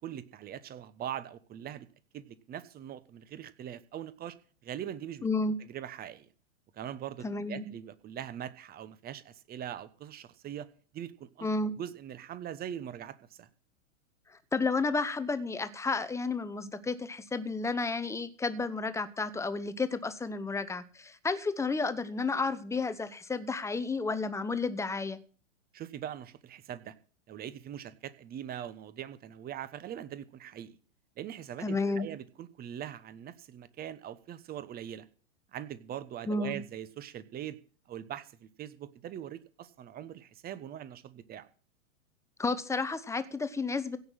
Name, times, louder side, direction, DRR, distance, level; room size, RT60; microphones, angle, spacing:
voice 1, 0.0-1.9 2.1-4.4 4.6-5.3 5.6-6.3 6.7-10.7 10.9-11.5 11.8-13.5 25.7-26.9 27.3-30.8 31.2-35.1 35.5-37.6 37.9-41.5, right 10 dB, 25° right, 16 dB, 1.1 m, -42 dB
voice 2, 5.2-5.5 7.2-7.7 11.4-11.7 14.5-25.2 31.6-32.1 36.3-36.6 42.4-44.0, left 3 dB, 5° left, 14 dB, 0.9 m, -31 dB
16.5 x 6.3 x 7.5 m, 0.41 s
hypercardioid pair, 110°, 38 cm